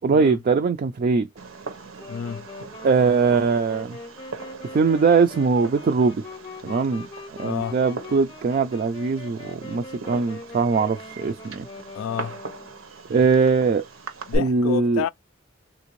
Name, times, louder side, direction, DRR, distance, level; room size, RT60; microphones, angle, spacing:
voice 1, 0.0-1.3 2.8-4.0 4.7-6.2 6.6-7.1 7.4-11.7 13.1-13.9 14.4-15.0, right 4 dB, 45° right, 0.3 m, -21 dB
Fireworks, 1.4-14.4, right 3 dB, 80° right, 0.8 m, -40 dB
Wind instrument woodwind instrument, 2.0-12.9, left 3 dB, 25° left, 0.7 m, -42 dB
voice 2, 2.1-2.5 7.4-7.8 11.9-12.4 14.3-15.1, left 8 dB, 90° left, 0.3 m, -29 dB
3.4 x 2.5 x 3.0 m
head